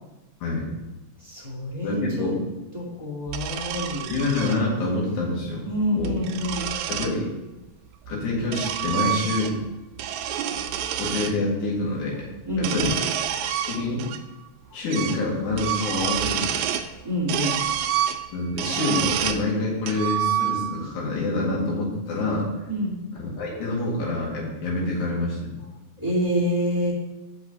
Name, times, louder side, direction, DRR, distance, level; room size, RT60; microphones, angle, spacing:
voice 1, 1.2-2.4 2.7-4.1 5.6-6.7 12.5-13.0 14.7-14.8 17.0-17.6 22.7-22.9 26.0-26.9, equal, 15° right, -6 dB, 2.3 m, -27 dB
voice 2, 1.8-2.4 4.1-5.6 5.9-6.2 6.9-7.3 8.1-9.5 11.0-12.3 12.5-12.9 13.5-14.1 14.7-16.6 18.3-22.5 23.1-25.5, left 2 dB, 75° left, -4 dB, 3.4 m, -26 dB
sound 1, 3.3-4.6 5.8-7.2 8.1-9.7 10.0-11.3 12.5-14.2 14.5-14.6 14.9-15.2 15.5-16.9 17.3-19.4 19.9-20.8, right 10 dB, 80° right, 1.8 m, -28 dB
6.2 x 5.4 x 6.6 m, 1.0 s
omnidirectional pair, 3.6 m